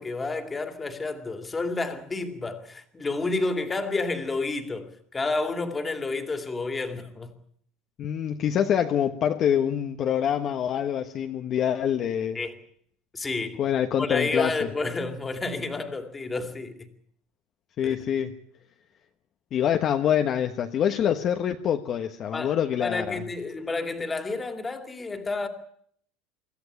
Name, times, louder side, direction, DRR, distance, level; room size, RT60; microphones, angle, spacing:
voice 1, 0.0-7.3 12.3-12.6 13.1-13.6 14.0-16.9 17.8-18.0 22.3-25.5, left 3 dB, 15° left, 2.4 m, -30 dB
voice 2, 8.0-12.4 13.6-14.5 17.8-18.3 19.5-23.2, left 9 dB, 35° left, 1.2 m, -25 dB
25.0 x 14.0 x 9.8 m
cardioid pair, 150°, 0 cm